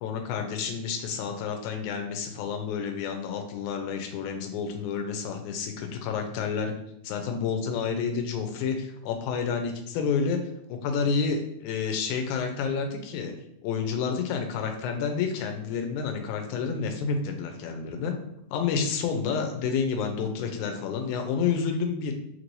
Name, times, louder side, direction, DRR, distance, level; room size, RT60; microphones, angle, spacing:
voice 1, 0.0-6.7 7.0-10.4 10.7-13.3 13.6-18.1 18.5-22.1, left 6 dB, 80° left, 4 dB, 2.0 m, -29 dB
4.6 x 3.1 x 2.6 m, 0.78 s
omnidirectional pair, 3.5 m